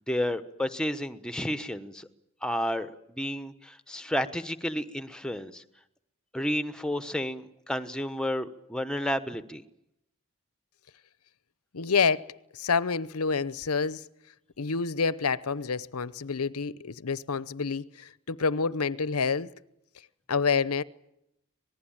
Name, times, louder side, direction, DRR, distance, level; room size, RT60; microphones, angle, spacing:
voice 1, 0.1-2.1 2.4-5.6 6.3-9.6, equal, 5° left, 1.1 m, -31 dB
voice 2, 11.7-14.0 14.6-19.5 20.3-20.8, left 5 dB, 90° left, 0.8 m, -28 dB
26.0 x 19.5 x 8.9 m
head